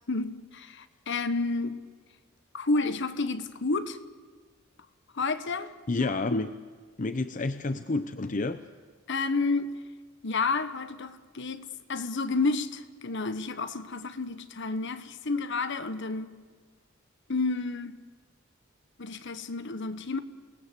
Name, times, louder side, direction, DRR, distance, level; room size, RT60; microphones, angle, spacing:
voice 1, 0.1-1.8 2.5-4.0 5.1-6.5 9.1-9.8 10.2-16.3 17.3-18.0 19.0-20.2, left 3 dB, 60° left, 1.3 m, -30 dB
voice 2, 5.9-6.5 7.0-8.6, left 3 dB, 40° left, 0.7 m, -29 dB
28.0 x 19.5 x 8.3 m
head